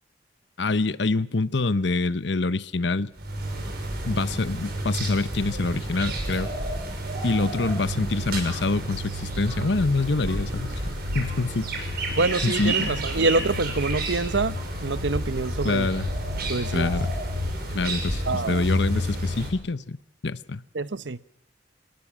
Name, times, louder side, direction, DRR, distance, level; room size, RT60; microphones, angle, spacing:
voice 1, 0.6-3.1 4.1-6.5 7.2-10.7 11.1-11.7 12.4-13.0 15.6-16.1 16.7-17.1 17.7-20.6, left 3 dB, 70° left, 0.9 m, -26 dB
sound 1, 3.2-19.5, right 1 dB, 60° right, 6.3 m, -30 dB
voice 2, 12.1-14.6 14.8-15.9 16.4-16.9 18.3-18.6 20.7-21.2, right 3 dB, 75° right, 0.9 m, -26 dB
27.0 x 20.0 x 7.4 m
head